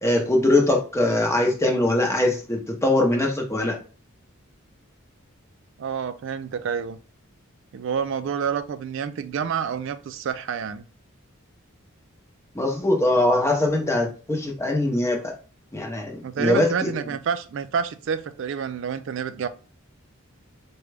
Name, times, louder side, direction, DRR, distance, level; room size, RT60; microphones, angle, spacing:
voice 1, 0.0-3.8 12.5-15.3 15.7-16.9, left 1 dB, 15° left, 0.7 m, -22 dB
voice 2, 5.8-7.0 7.7-10.8 16.2-19.5, right 7 dB, 60° right, 0.3 m, -28 dB
4.9 x 2.2 x 3.2 m
head